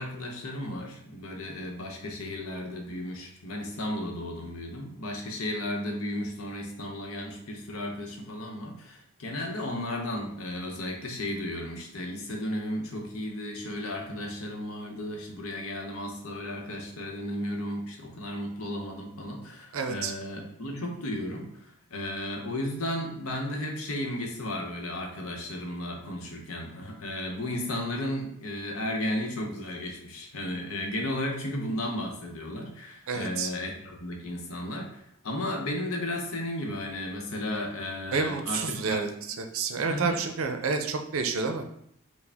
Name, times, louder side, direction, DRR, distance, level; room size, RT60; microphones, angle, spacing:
voice 1, 0.0-39.0 39.9-40.2, left 1 dB, 90° left, 2 dB, 0.8 m, -34 dB
voice 2, 19.7-20.1 33.1-33.5 38.1-39.1 39.4-41.6, right 4 dB, 75° right, 6 dB, 0.5 m, -29 dB
4.8 x 2.0 x 3.4 m, 0.70 s
head